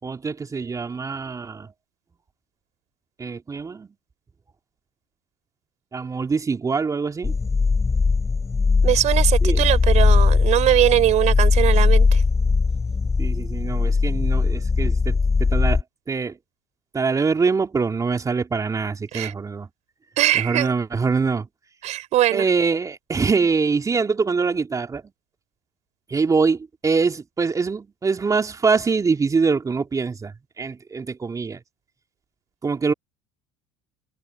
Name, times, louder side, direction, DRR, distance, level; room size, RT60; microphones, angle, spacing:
voice 1, 0.0-1.7 3.2-3.9 5.9-7.4 9.4-9.7 13.2-16.4 16.9-19.7 20.3-21.5 22.3-25.0 26.1-31.6 32.6-32.9, right 4 dB, 25° right, 3.3 m, -24 dB
sound 1, 7.2-15.8, left 4 dB, 20° left, 3.4 m, -19 dB
voice 2, 8.8-12.2 19.1-19.3 20.2-20.8 21.8-22.5, right 13 dB, 55° right, 4.7 m, -21 dB
hypercardioid pair, 90°, 14 cm